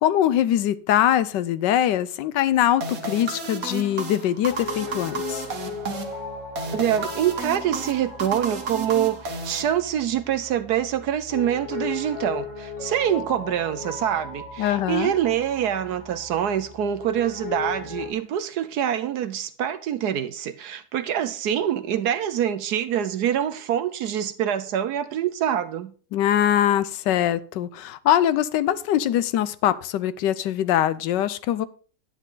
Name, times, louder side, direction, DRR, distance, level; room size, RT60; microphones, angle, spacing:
voice 1, 0.0-5.4 14.6-15.1 26.1-31.7, left 11 dB, 80° left, 1.3 m, -22 dB
sound 1, 2.8-10.2, right 3 dB, 55° right, 1.8 m, -33 dB
Piano, 4.4-18.1, left 4 dB, 45° left, 4.3 m, -37 dB
voice 2, 6.7-25.9, right 10 dB, 70° right, 1.2 m, -25 dB
10.0 x 10.0 x 3.8 m
omnidirectional pair, 1.9 m